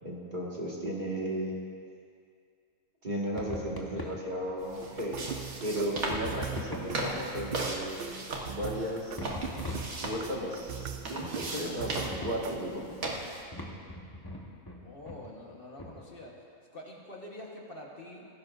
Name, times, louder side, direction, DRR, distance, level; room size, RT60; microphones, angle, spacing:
voice 1, 0.0-1.6 3.0-8.0 8.4-9.3 10.0-12.9, equal, 35° right, -4 dB, 2.0 m, -35 dB
sound 1, 3.3-4.2 6.0-7.1 9.2-10.2 11.2-11.5 12.1-12.5 13.5-14.8 15.1-15.2 15.8-16.0, left 1 dB, 15° left, 1.3 m, -40 dB
sound 2, 4.6-13.4, right 2 dB, 80° right, 1.9 m, -38 dB
sound 3, 4.8-12.8, right 8 dB, 60° right, 0.6 m, -41 dB
voice 2, 14.8-16.3 16.7-18.2, left 1 dB, 45° left, -2 dB, 1.4 m, -46 dB
18.0 x 15.5 x 2.6 m, 2.2 s
omnidirectional pair, 1.4 m